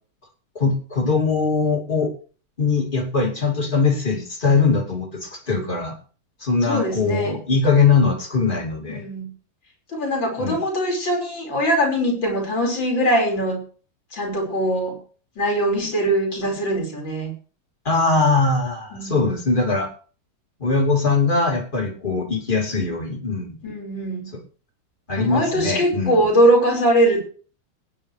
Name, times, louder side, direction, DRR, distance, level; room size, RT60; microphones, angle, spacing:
voice 1, 0.5-2.1 2.6-5.9 6.4-9.0 10.4-10.6 17.8-19.9 20.6-23.6 25.1-26.2, left 4 dB, 25° left, 2 dB, 2.7 m, -21 dB
voice 2, 6.6-7.4 8.9-9.3 9.9-13.6 14.1-15.0 15.4-17.3 18.9-19.2 23.6-24.3 25.2-27.2, right 1 dB, 60° left, 1 dB, 5.8 m, -21 dB
20.5 x 9.9 x 3.3 m, 0.40 s
omnidirectional pair, 2.3 m